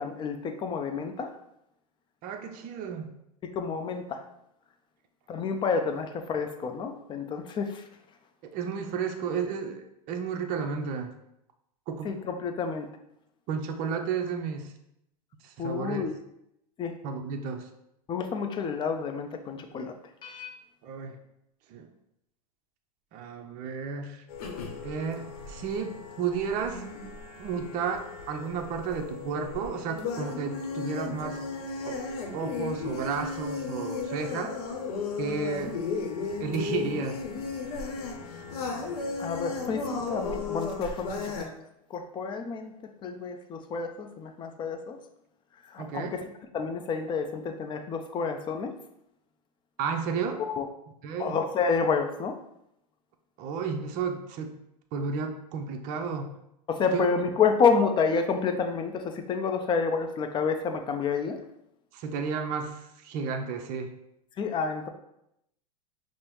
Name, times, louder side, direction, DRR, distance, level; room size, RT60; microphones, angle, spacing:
voice 1, 0.0-1.3 3.4-4.2 5.3-7.9 12.0-12.9 15.6-16.2 16.8-17.0 18.1-19.9 20.2-20.5 39.2-41.5 41.9-42.7 43.0-45.0 45.7-46.2 46.5-48.7 50.6-50.7 51.2-52.4 56.7-61.4 64.4-64.9, left 5 dB, 25° left, 6 dB, 0.4 m, -29 dB
voice 2, 2.2-3.1 8.5-11.1 11.9-12.1 13.5-14.7 15.4-16.1 17.0-17.7 20.8-21.2 21.7-21.9 23.1-24.2 24.8-26.8 27.4-28.0 28.3-31.4 31.8-32.0 32.3-34.6 35.2-35.8 36.4-37.2 45.8-46.1 49.8-50.4 51.0-51.4 53.4-54.6 54.9-56.3 56.9-57.1 61.9-63.9, right 6 dB, 45° right, 4 dB, 0.5 m, -32 dB
sound 1, 24.3-41.5, left 4 dB, 70° left, 0.8 m, -35 dB
5.3 x 2.0 x 3.1 m, 0.80 s
hypercardioid pair, 100°, 20 cm